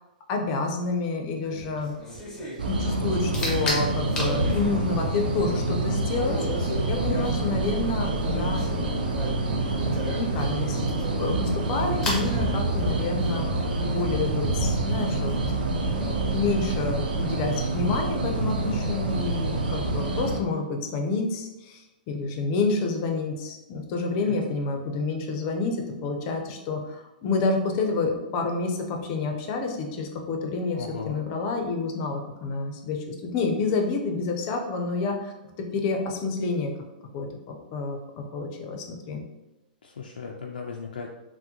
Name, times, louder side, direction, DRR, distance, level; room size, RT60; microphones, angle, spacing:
voice 1, 0.3-2.0 2.7-6.4 6.6-8.7 10.2-10.9 11.2-13.5 13.8-15.6 15.9-16.1 16.3-35.3 35.6-36.7 37.1-39.2, left 3 dB, 40° left, 3 dB, 0.6 m, -29 dB
sound 1, 1.4-16.4, equal, 10° left, 0.9 m, -34 dB
sound 2, 2.6-20.4, right 2 dB, 85° right, 0.5 m, -27 dB
Thunder, 8.7-11.7 12.2-12.3 13.6-13.7, right 1 dB, 25° right, 1.1 m, -45 dB
voice 2, 30.7-31.2 39.8-41.1, left 5 dB, 90° left, 0 dB, 0.4 m, -37 dB
3.5 x 2.1 x 2.8 m, 1.0 s
hypercardioid pair, 130°, 5 cm